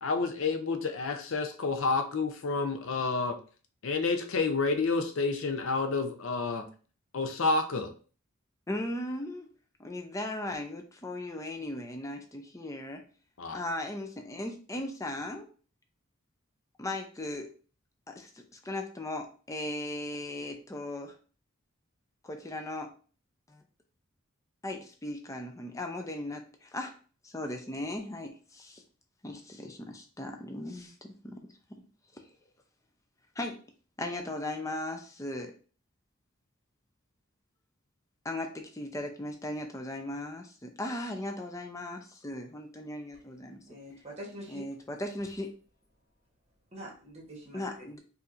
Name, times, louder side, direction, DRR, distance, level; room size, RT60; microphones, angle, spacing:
voice 1, 0.0-3.4 3.8-6.7 7.1-7.9 13.4-13.6, left 3 dB, 70° left, 7 dB, 0.6 m, -29 dB
voice 2, 8.7-9.5 9.8-13.0 13.5-15.5 16.8-17.5 18.1-21.2 22.2-22.9 23.5-23.6 24.6-26.9 27.2-28.8 29.2-31.8 32.1-32.2 33.4-33.6 34.0-35.5 38.2-43.6 44.5-45.5 47.5-48.0, left 1 dB, 15° left, 4 dB, 0.5 m, -37 dB
voice 3, 43.7-44.6 46.7-47.9, equal, 30° right, -2 dB, 1.1 m, -45 dB
4.5 x 2.7 x 2.5 m, 0.39 s
head